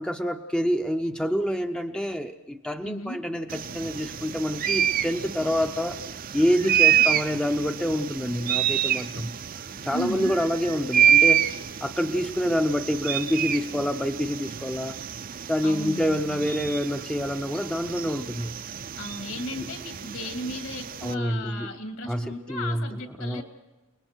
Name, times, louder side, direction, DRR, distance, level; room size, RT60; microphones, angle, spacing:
voice 1, 0.0-6.0 6.3-9.3 9.8-11.5 11.8-15.0 15.5-18.5 19.6-19.7 21.0-21.7 22.1-22.9 23.2-23.4, equal, 5° left, 6 dB, 0.6 m, -27 dB
voice 2, 2.8-3.2 6.6-7.1 9.9-10.3 15.6-16.6 18.9-23.4, left 1 dB, 65° left, 5 dB, 2.6 m, -35 dB
sound 1, 3.5-21.1, right 9 dB, 40° right, 0.5 m, -27 dB
30.0 x 20.0 x 4.6 m, 1.2 s
head